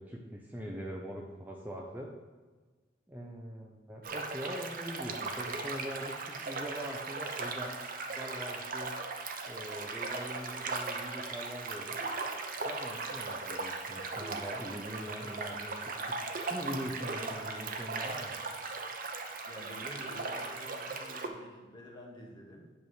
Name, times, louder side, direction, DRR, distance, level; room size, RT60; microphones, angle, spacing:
voice 1, 0.0-2.1 3.1-7.8 8.2-9.0 9.5-12.0 12.6-16.2 16.4-18.3, equal, 10° right, -1 dB, 0.6 m, -42 dB
sound 1, 4.0-21.3, right 3 dB, 50° right, 0.7 m, -38 dB
voice 2, 19.5-22.6, equal, 25° left, -2 dB, 1.5 m, -49 dB
8.5 x 3.5 x 6.4 m, 1.4 s
head